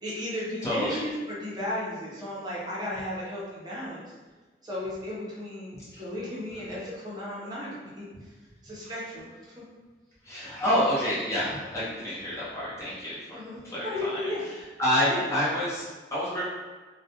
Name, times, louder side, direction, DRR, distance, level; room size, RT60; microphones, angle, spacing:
voice 1, 0.0-4.1 4.6-8.1 8.6-9.3 13.3-14.4 15.1-15.2, left 1 dB, 25° right, -7 dB, 0.7 m, -34 dB
voice 2, 0.6-1.0 5.7-6.0 8.8-8.9 10.2-13.4 13.6-16.4, left 1 dB, 15° left, -10 dB, 0.7 m, -29 dB
2.2 x 2.2 x 2.8 m, 1.3 s
head